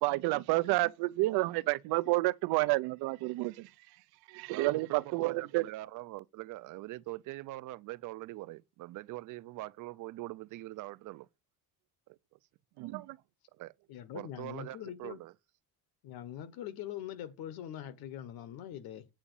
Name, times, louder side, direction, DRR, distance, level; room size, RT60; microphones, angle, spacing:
voice 1, 0.0-3.7 4.3-5.6 12.8-13.2, right 21 dB, 85° right, 0.7 m, -30 dB
voice 2, 4.5-11.3 12.1-12.4 13.5-13.7 14.1-15.3, right 17 dB, 55° right, 0.5 m, -43 dB
voice 3, 13.9-15.2 16.0-19.1, left 10 dB, 70° left, 1.4 m, -43 dB
8.7 x 5.0 x 7.0 m
cardioid pair, 170°, 38 cm